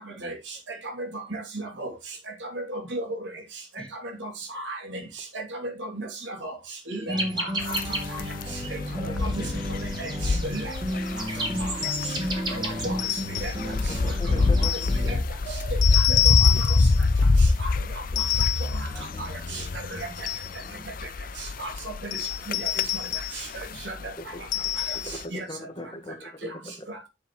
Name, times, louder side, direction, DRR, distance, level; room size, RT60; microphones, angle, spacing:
voice 1, 1.0-1.9 2.4-3.2 4.2-5.0 5.3-6.5 6.9-7.8 8.1-8.2 9.2-9.3 10.0-10.7 12.5-13.0 13.4-13.5 14.6-14.7 15.0-15.2 15.4-15.6 16.1-16.3 17.6-17.7 19.2-19.6 19.9-20.0 21.4-21.7 22.0-22.1 22.5-22.7 23.3-23.5 23.8-23.9 25.3-25.4 26.9-27.0, right 1 dB, 80° right, 2.8 m, -34 dB
sound 1, 7.1-15.2, equal, 25° right, 2.8 m, -32 dB
sound 2, 7.6-25.2, left 3 dB, 50° left, 0.5 m, -26 dB
voice 2, 9.0-9.3 13.8-15.1 24.2-24.4 25.0-26.7, left 1 dB, 25° left, 1.6 m, -39 dB
sound 3, 11.8-12.2 13.0-13.6 14.6-15.0 15.8-17.0 18.2-18.8 19.9-20.6 22.1-23.4 24.5-25.2, left 13 dB, 80° left, 1.1 m, -27 dB
voice 3, 17.2-17.6 18.9-19.8 20.4-20.8, left 1 dB, 5° left, 1.9 m, -49 dB
10.0 x 7.6 x 3.1 m
head